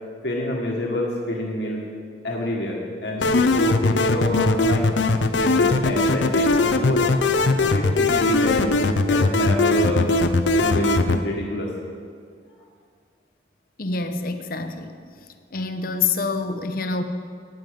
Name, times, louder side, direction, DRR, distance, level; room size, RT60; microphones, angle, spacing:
voice 1, 0.2-1.8 2.2-4.9 5.3-7.0 7.6-10.1 10.5-11.7, left 1 dB, 75° left, -1 dB, 1.6 m, -27 dB
sound 1, 3.2-11.2, left 2 dB, 90° left, 0.6 m, -20 dB
voice 2, 13.8-14.9 15.5-17.0, left 4 dB, 50° left, 8 dB, 0.9 m, -26 dB
15.0 x 9.4 x 5.2 m, 2.1 s
head